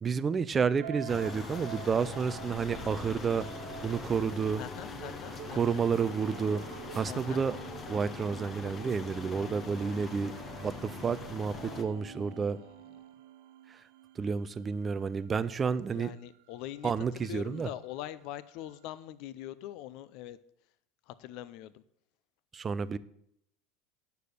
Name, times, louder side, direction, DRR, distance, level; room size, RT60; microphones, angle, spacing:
voice 1, 0.0-3.5 3.8-4.6 5.5-6.6 6.9-7.6 7.9-12.6 13.7-13.8 14.2-16.1 16.8-17.7 22.5-23.0, right 6 dB, 15° right, 16 dB, 0.4 m, -30 dB
sound 1, 0.8-14.9, right 9 dB, 75° right, 1.2 m, -48 dB
sound 2, 1.1-11.8, left 4 dB, 20° left, 0.8 m, -42 dB
voice 2, 4.6-5.8 7.1-7.4 11.5-12.7 15.9-20.4 21.1-21.8, left 13 dB, 50° left, 16 dB, 0.5 m, -43 dB
9.6 x 6.8 x 6.6 m, 0.73 s
cardioid pair, 170°, 0 cm